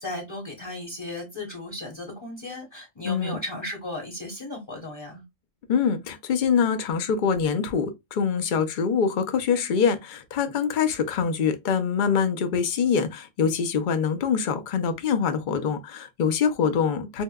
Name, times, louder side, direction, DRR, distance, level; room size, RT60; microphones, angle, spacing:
voice 1, 0.0-5.2, left 1 dB, 25° left, 0.8 m, -35 dB
voice 2, 3.0-3.4 5.7-17.2, left 6 dB, 55° left, 0.6 m, -24 dB
4.5 x 2.1 x 2.2 m
omnidirectional pair, 1.3 m